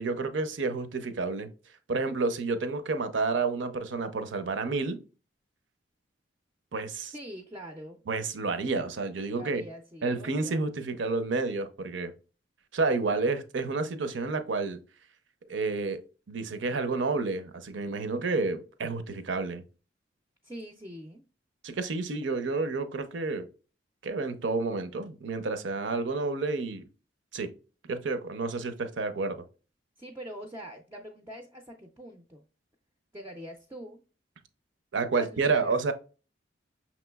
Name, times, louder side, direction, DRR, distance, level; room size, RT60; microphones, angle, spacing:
voice 1, 0.0-1.5 1.9-5.0 6.7-7.1 8.1-9.6 10.0-12.1 12.7-14.8 15.5-16.0 16.3-19.6 21.6-23.5 24.0-26.8 27.3-27.5 27.9-29.4 34.9-35.9, right 3 dB, 75° right, 0.6 m, -30 dB
voice 2, 7.1-8.0 9.3-10.6 20.4-21.2 30.0-32.4 33.1-34.0 35.2-35.7, equal, 15° right, 0.4 m, -44 dB
5.9 x 3.0 x 2.2 m
head